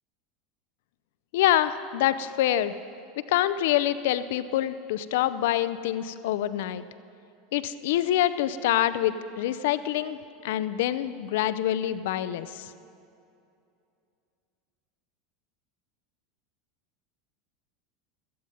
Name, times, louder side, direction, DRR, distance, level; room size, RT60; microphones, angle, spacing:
voice 1, 1.3-2.7 3.3-6.8 7.5-10.2 10.4-12.7, left 12 dB, 60° left, 14 dB, 0.5 m, -26 dB
17.0 x 13.5 x 4.1 m, 2.6 s
figure-of-eight pair, 80°, 0 cm